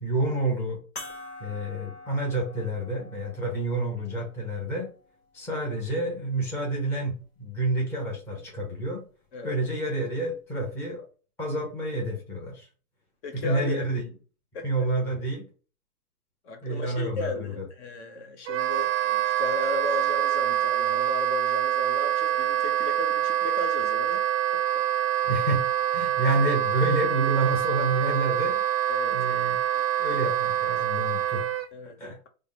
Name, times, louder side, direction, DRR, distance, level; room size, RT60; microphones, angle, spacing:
voice 1, 0.0-0.8 1.4-4.9 5.3-9.0 9.4-11.0 11.4-12.7 13.3-14.1 14.6-15.5 16.6-17.6 25.2-28.6 29.1-29.6 30.0-31.4 32.0-32.2, right 2 dB, 5° left, 0.6 m, -29 dB
sound 1, 1.0-5.8 6.5-6.6 8.8-8.9, left 2 dB, 20° left, 1.1 m, -46 dB
voice 2, 13.2-13.9 14.5-14.9 16.4-24.2 24.5-24.6 28.9-29.2 30.1-30.2 31.7-32.0, left 3 dB, 50° left, 0.8 m, -35 dB
Wind instrument woodwind instrument, 18.5-31.7, right 11 dB, 45° right, 0.5 m, -26 dB
3.4 x 2.1 x 4.2 m
hypercardioid pair, 135°, 45 cm